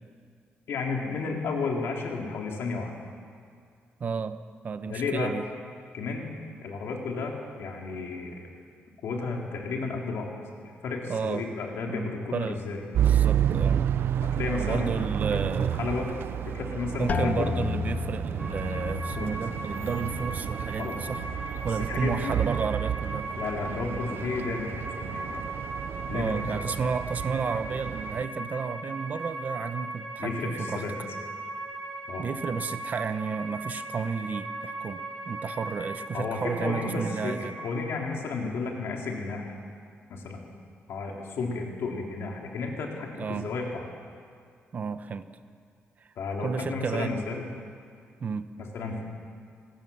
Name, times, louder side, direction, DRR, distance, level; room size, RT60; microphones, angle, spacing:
voice 1, 0.7-2.9 4.8-5.3 5.9-6.3 6.6-8.4 9.0-10.3 10.6-12.8 14.2-15.0 15.3-16.1 16.5-17.5 19.2-19.4 20.8-21.0 21.9-22.4 23.4-25.4 26.0-26.3 30.2-30.9 32.1-32.3 36.1-39.5 40.1-40.4 40.9-43.8 46.2-47.4 48.7-49.0, left 4 dB, 75° left, 0 dB, 3.7 m, -32 dB
voice 2, 4.0-4.4 4.6-5.5 11.1-11.5 11.9-12.6 13.0-13.8 14.5-16.0 17.0-23.3 26.1-30.8 32.2-37.5 43.2-43.5 44.7-45.3 46.4-47.2 48.2-48.5, right 5 dB, 40° right, 11 dB, 1.0 m, -32 dB
sound 1, 12.9-28.2, right 10 dB, 65° right, 0.5 m, -30 dB
sound 2, 17.1-22.7 23.0-23.7 24.3-24.7, left 6 dB, 40° left, 0.5 m, -35 dB
sound 3, 18.4-37.7, right 2 dB, 10° right, 7.1 m, -38 dB
26.0 x 18.5 x 7.2 m, 2.2 s
wide cardioid pair, 160°, 4 cm